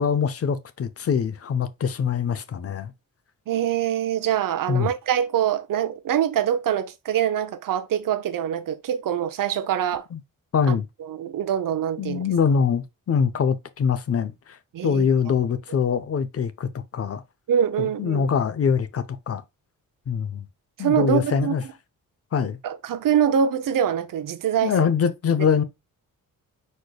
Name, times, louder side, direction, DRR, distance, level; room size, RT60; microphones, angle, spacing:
voice 1, 0.0-2.9 4.7-4.9 10.1-10.2 10.5-10.9 12.0-14.6 14.8-17.2 17.8-19.4 20.1-20.5 20.8-21.6 22.3-22.6 24.6-25.6, left 6 dB, 45° left, 0.5 m, -23 dB
voice 2, 3.5-10.1 10.7-12.2 14.7-15.1 17.5-18.3 20.8-21.5 22.6-24.8, right 9 dB, 70° right, 0.7 m, -24 dB
4.9 x 4.3 x 2.2 m
wide cardioid pair, 140°, 34 cm